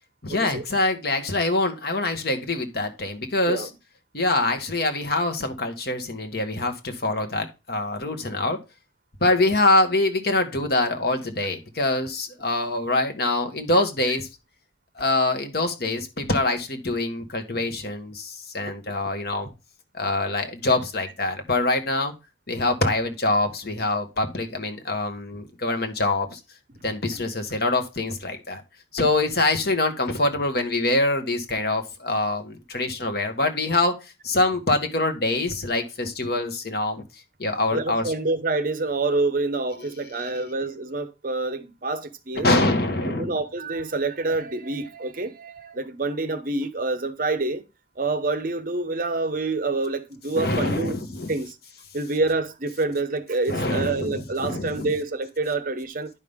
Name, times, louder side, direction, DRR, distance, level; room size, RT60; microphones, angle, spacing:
voice 1, 0.2-3.7 4.1-8.6 9.2-14.3 14.9-19.5 19.9-22.1 22.5-26.4 26.8-28.6 28.9-37.0 37.4-38.1 39.8-40.3 42.4-43.4 50.3-51.3 53.5-54.9, left 2 dB, 55° left, 1.5 m, -24 dB
voice 2, 37.7-42.5 43.1-47.6 48.0-50.9 51.3-51.5 51.9-56.1, right 3 dB, 45° right, 0.8 m, -27 dB
10.5 x 5.6 x 3.5 m
head